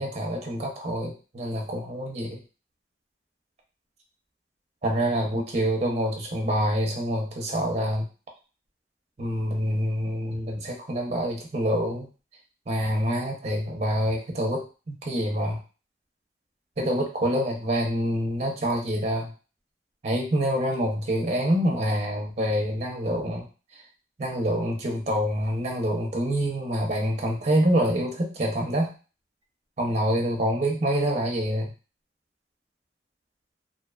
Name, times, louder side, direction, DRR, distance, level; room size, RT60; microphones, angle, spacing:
voice 1, 0.0-2.4 4.8-8.1 9.2-12.1 12.7-15.6 16.8-19.3 20.0-23.5 23.7-23.8 24.2-28.9 29.8-31.7, equal, 40° right, 0 dB, 0.6 m, -26 dB
2.5 x 2.3 x 2.3 m, 0.34 s
head